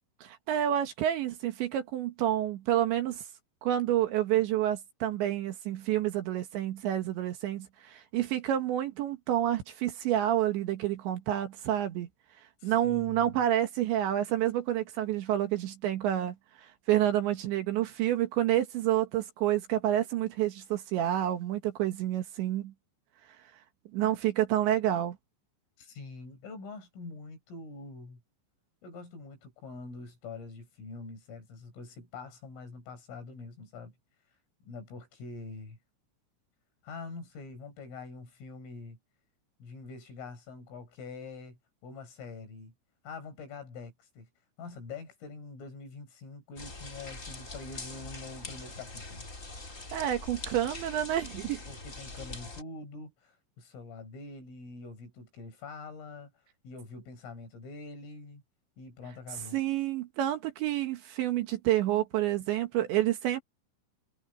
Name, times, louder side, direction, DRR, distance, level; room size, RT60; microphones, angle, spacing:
voice 1, 0.2-3.2 3.6-12.1 12.6-16.3 16.6-22.7 23.9-25.2 49.9-51.6 59.5-63.4, right 12 dB, 70° right, 3.5 m, -29 dB
voice 2, 12.6-13.4 25.8-28.2 28.8-33.9 34.6-35.8 36.8-39.0 39.6-41.6 41.8-42.7 43.0-44.3 44.6-49.3 51.7-56.3 56.6-58.4 58.8-59.6, left 4 dB, 70° left, 8.7 m, -45 dB
sound 1, 46.6-52.6, left 2 dB, 20° left, 2.5 m, -43 dB
omnidirectional pair, 6.0 m